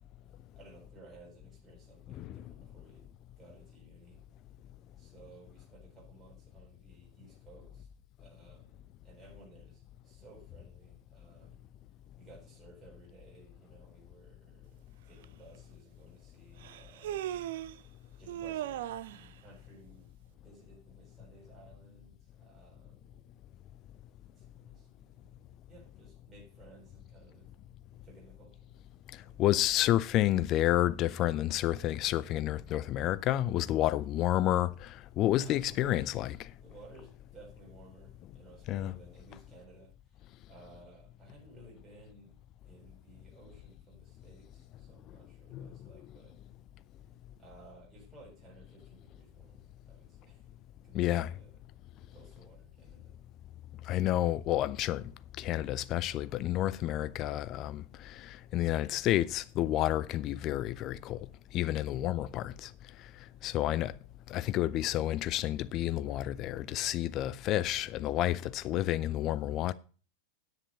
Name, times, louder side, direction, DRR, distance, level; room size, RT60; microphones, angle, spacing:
voice 1, 0.6-3.1 3.4-4.2 5.0-7.9 8.2-11.6 12.2-17.3 18.2-18.8 19.1-20.1 20.4-23.3 24.4-27.5 28.0-28.7 29.2-29.4 35.4-36.1 36.6-42.3 42.7-46.4 47.4-50.5 50.8-51.6 52.0-53.2 62.1-62.5 63.4-64.0, right 2 dB, 15° right, 7.3 m, -57 dB
voice 2, 2.1-2.4 29.4-36.3 38.7-38.9 45.5-45.7 50.9-51.3 53.9-55.0 55.4-61.3 61.5-62.7 63.4-63.9 64.3-69.7, left 13 dB, 35° left, 0.6 m, -30 dB
Human voice, 15.2-15.3 16.6-17.8 18.3-19.3, right 12 dB, 55° right, 0.5 m, -38 dB
10.0 x 8.2 x 5.4 m
figure-of-eight pair, 90°, 0 cm